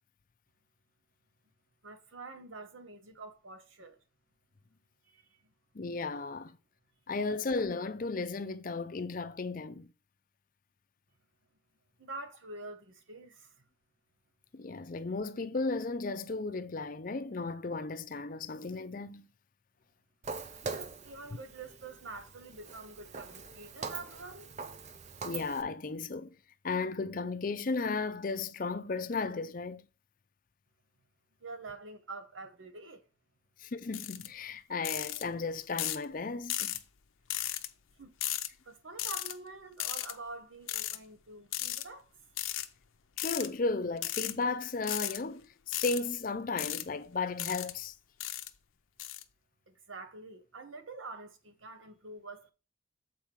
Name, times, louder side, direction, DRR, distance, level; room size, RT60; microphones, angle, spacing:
voice 1, 1.8-4.0 5.0-5.3 12.0-13.6 20.6-24.5 31.4-33.0 38.0-38.1 38.6-42.1 49.7-52.5, right 3 dB, 80° right, 1.1 m, -46 dB
voice 2, 5.7-6.6 7.1-9.9 14.5-19.3 25.2-26.3 26.6-29.8 33.6-36.8 43.2-48.0, left 3 dB, 45° left, 0.5 m, -35 dB
Walk footsteps, 20.2-25.6, right 4 dB, 35° right, 0.5 m, -43 dB
sound 1, 33.9-34.3 34.8-35.2 35.8-36.0 36.5-36.8 37.3-37.7 38.2-38.5 39.0-39.3 39.8-40.1 40.7-41.0 41.5-41.8 42.4-42.7 43.2-43.5 44.0-44.3 44.8-45.2 45.7-46.0 46.6-46.8 47.4-47.7 48.2-48.5 49.0-49.2, left 13 dB, 85° left, 0.6 m, -35 dB
7.3 x 4.5 x 4.6 m
head